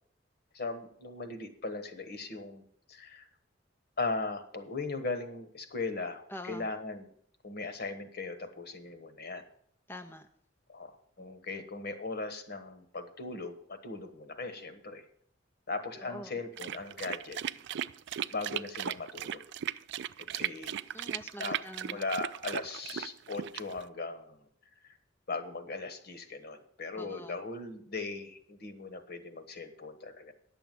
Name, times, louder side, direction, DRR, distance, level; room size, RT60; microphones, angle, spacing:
voice 1, 0.5-2.6 2.9-3.3 4.0-7.1 7.4-9.4 10.7-10.9 11.2-15.0 15.7-17.4 18.3-19.4 20.3-20.8 21.4-21.6 21.9-24.4 24.8-25.0 25.3-30.3, left 3 dB, 55° left, 9 dB, 1.3 m, -38 dB
voice 2, 6.3-6.7 9.9-10.3 16.0-16.3 20.9-22.0 27.0-27.4, left 1 dB, 10° left, 5 dB, 0.5 m, -45 dB
sound 1, 16.6-23.9, right 10 dB, 65° right, 0.4 m, -37 dB
10.0 x 7.0 x 7.6 m, 0.63 s
head